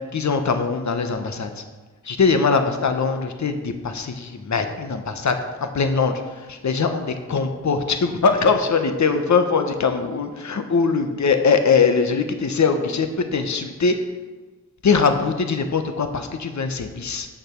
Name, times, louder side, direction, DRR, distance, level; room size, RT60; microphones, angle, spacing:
voice 1, 0.1-1.5 2.0-6.2 6.5-14.0 14.8-17.3, left 5 dB, 55° left, 7 dB, 1.1 m, -21 dB
8.4 x 6.6 x 5.9 m, 1.3 s
cardioid pair, 50°, 34 cm